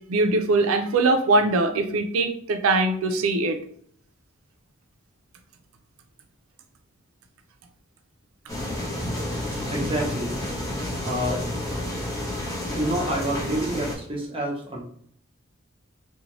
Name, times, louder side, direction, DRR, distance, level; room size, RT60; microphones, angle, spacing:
voice 1, 0.1-3.6, right 2 dB, 85° right, 6 dB, 0.4 m, -21 dB
sound 1, 8.5-14.0, left 1 dB, 15° left, 0.7 m, -30 dB
voice 2, 9.7-10.4 11.0-11.4 12.7-14.8, right 1 dB, 25° right, -2 dB, 0.7 m, -28 dB
2.6 x 2.1 x 3.0 m, 0.63 s
head